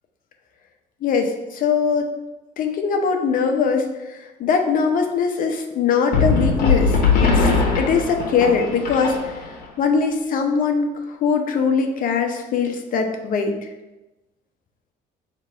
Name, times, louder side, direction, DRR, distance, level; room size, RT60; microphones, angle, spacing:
voice 1, 1.0-2.1 2.6-7.5 7.8-9.3 9.8-13.5, left 5 dB, 55° left, 4 dB, 0.6 m, -21 dB
sound 1, 6.1-9.6, left 4 dB, 75° left, 0.9 m, -20 dB
3.4 x 2.9 x 4.6 m, 1.1 s
cardioid pair, 110°, 17 cm